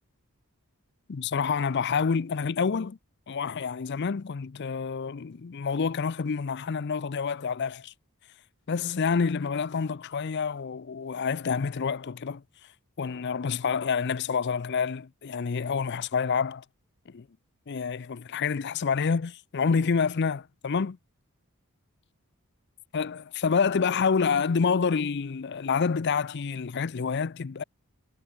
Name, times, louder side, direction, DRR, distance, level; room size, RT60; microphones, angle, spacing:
voice 1, 1.1-3.0 3.3-7.9 8.7-12.4 13.0-16.6 17.1-17.3 17.7-21.0 22.9-27.6, left 5 dB, 50° left, 0.5 m, -28 dB
head